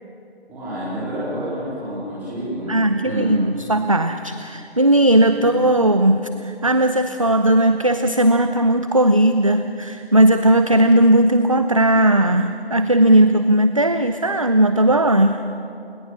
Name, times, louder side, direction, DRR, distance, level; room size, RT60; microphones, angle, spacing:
voice 1, 0.5-3.4 5.3-5.4, equal, 5° right, -10 dB, 4.0 m, -29 dB
voice 2, 2.7-15.4, right 1 dB, 30° right, 9 dB, 0.6 m, -17 dB
30.0 x 19.0 x 6.1 m, 2.7 s
figure-of-eight pair, 170°, 32 cm